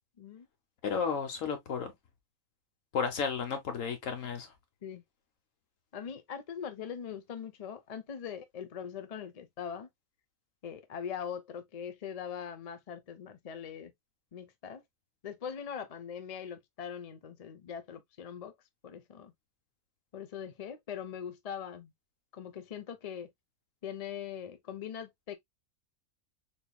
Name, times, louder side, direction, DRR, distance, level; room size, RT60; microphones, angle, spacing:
voice 1, 0.8-1.9 2.9-4.5, left 6 dB, 75° left, 1.4 m, -33 dB
voice 2, 5.9-9.9 10.6-13.9 14.3-14.8 15.2-18.5 18.8-19.3 20.1-21.9 22.3-23.3 23.8-25.4, left 8 dB, 45° left, 0.5 m, -41 dB
3.8 x 3.4 x 2.2 m
omnidirectional pair, 1.4 m